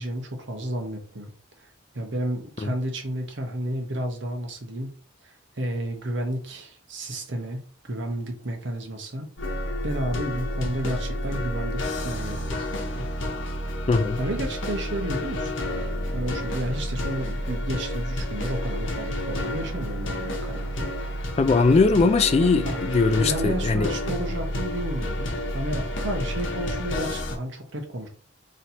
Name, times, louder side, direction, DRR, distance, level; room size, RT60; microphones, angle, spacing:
voice 1, 0.0-1.3 1.6-1.7 1.9-4.9 5.2-13.0 14.2-15.7 16.1-20.9 22.4-22.8 23.2-28.1, right 1 dB, 65° right, 1.0 m, -32 dB
sound 1, 9.4-27.4, left 1 dB, 75° left, 0.9 m, -30 dB
voice 2, 13.9-14.2 21.4-23.9, left 4 dB, 35° left, 0.3 m, -20 dB
3.2 x 2.8 x 4.1 m
head